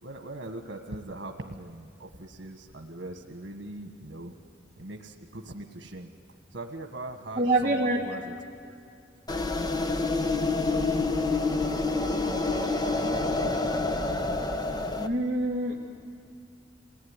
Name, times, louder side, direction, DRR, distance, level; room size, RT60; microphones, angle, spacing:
voice 1, 0.0-4.3 4.8-6.1 6.5-8.3 8.6-8.8 10.6-11.8 12.2-13.4, right 2 dB, 85° right, 4 dB, 1.5 m, -42 dB
voice 2, 7.4-8.1 15.0-15.7, right 2 dB, 25° right, -7 dB, 2.2 m, -25 dB
sound 1, 9.3-15.1, left 3 dB, 20° left, 0.9 m, -27 dB
26.5 x 18.5 x 9.8 m, 2.4 s
head